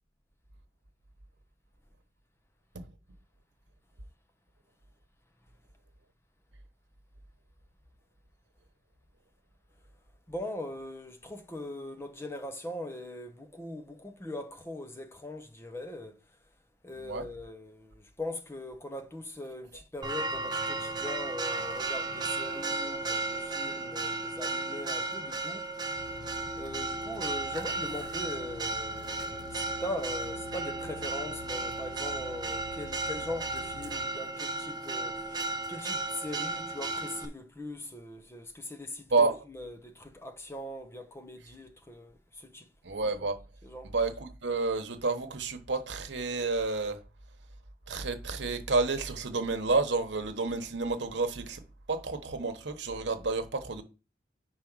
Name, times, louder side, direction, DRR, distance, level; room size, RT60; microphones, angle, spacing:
voice 1, 10.3-16.2 16.8-25.7 26.6-42.7 43.6-43.9, left 1 dB, 15° left, 0.7 m, -41 dB
Church bell, 20.0-37.3, right 3 dB, 25° right, 0.7 m, -34 dB
sound 1, 25.9-34.1, left 5 dB, 90° left, 0.6 m, -48 dB
voice 2, 42.8-43.4 43.8-47.0 47.9-51.6 51.9-53.8, right 3 dB, 75° right, 1.0 m, -30 dB
5.1 x 4.6 x 6.0 m
head